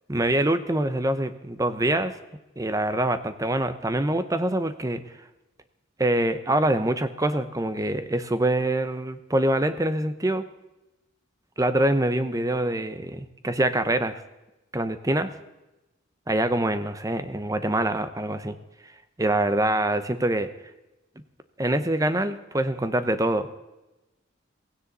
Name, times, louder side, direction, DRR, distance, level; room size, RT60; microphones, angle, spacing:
voice 1, 0.1-2.1 2.6-5.0 6.0-10.4 11.6-14.2 14.7-15.3 16.3-18.6 19.2-20.5 21.6-23.5, right 1 dB, 15° right, 11 dB, 0.8 m, -25 dB
16.5 x 16.0 x 4.1 m, 0.99 s
head